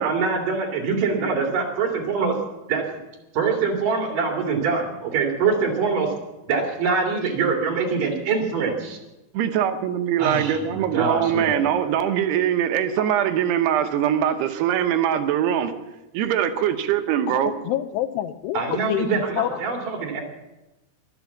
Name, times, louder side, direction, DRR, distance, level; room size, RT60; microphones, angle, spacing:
voice 1, 0.0-2.3 2.7-2.8 3.3-6.1 6.5-9.0 10.2-11.6 18.5-20.2, right 5 dB, 55° right, 2 dB, 3.8 m, -24 dB
voice 2, 9.3-15.7 16.1-17.5, right 10 dB, 80° right, 8 dB, 3.0 m, -22 dB
voice 3, 17.3-19.1 19.4-19.6, left 13 dB, 85° left, 13 dB, 2.9 m, -27 dB
23.0 x 8.2 x 7.1 m, 1.0 s
omnidirectional pair, 4.7 m